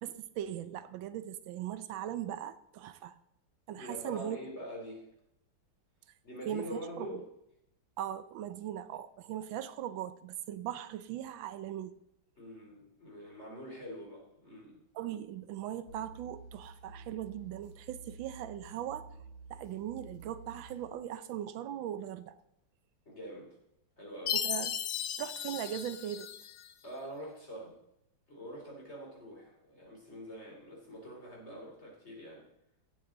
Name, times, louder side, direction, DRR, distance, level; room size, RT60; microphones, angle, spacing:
voice 1, 0.0-3.1 3.7-4.4 6.5-7.1 8.0-11.9 14.9-19.1 19.5-22.3 24.3-24.7 25.2-26.3, right 11 dB, 80° right, 1.4 m, -39 dB
voice 2, 3.7-5.1 6.2-7.2 12.4-14.8 23.1-23.6 24.0-24.4 26.8-27.8 28.3-32.4, equal, 35° left, 3.7 m, -45 dB
sound 1, 15.9-20.9, right 3 dB, 80° left, 3.2 m, -51 dB
Chime, 24.3-26.7, left 9 dB, 60° left, 0.9 m, -36 dB
16.0 x 8.3 x 3.8 m
omnidirectional pair, 2.1 m